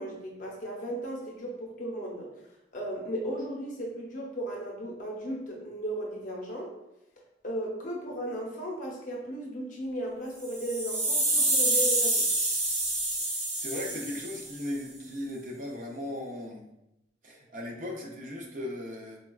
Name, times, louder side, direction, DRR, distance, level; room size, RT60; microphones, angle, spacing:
voice 1, 0.0-2.3 2.7-6.7 7.4-12.3, right 1 dB, 45° left, -2 dB, 0.7 m, -35 dB
sound 1, 10.4-14.6, right 2 dB, 80° right, 0.9 m, -27 dB
voice 2, 13.5-16.6 17.2-19.2, left 1 dB, 45° right, 0 dB, 0.5 m, -37 dB
4.0 x 2.2 x 2.3 m, 0.89 s
head